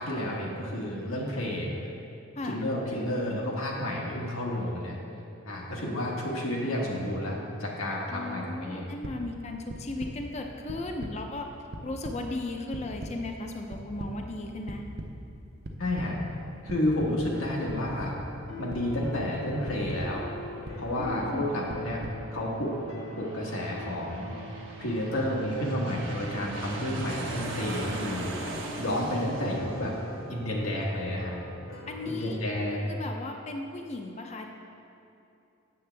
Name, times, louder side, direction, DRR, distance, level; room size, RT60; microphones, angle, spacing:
voice 1, 0.0-1.7 2.5-5.0 5.4-8.9 15.8-16.2 16.6-18.1 18.6-20.2 20.7-22.0 22.3-22.7 23.2-24.3 24.8-29.9 30.3-31.3 32.1-33.0, left 1 dB, 85° left, -3 dB, 1.2 m, -31 dB
voice 2, 8.1-11.5 11.8-14.8 21.0-21.5 31.9-34.5, left 2 dB, 30° left, 3 dB, 0.5 m, -36 dB
sound 1, 9.0-9.1 9.7-10.1 10.7-11.1 11.5-12.1 12.7-13.1 13.7-14.1 14.7-15.1 15.6-16.1 16.7-17.1 17.7-18.1 18.7-19.1 19.7-20.1 20.6-21.1 21.7-22.1, right 1 dB, 50° right, 0.6 m, -38 dB
sound 2, 17.2-32.3, left 2 dB, 65° left, 0.8 m, -43 dB
Aircraft, 20.4-31.5, right 2 dB, 65° right, 0.9 m, -41 dB
8.3 x 6.7 x 3.3 m, 2.7 s
head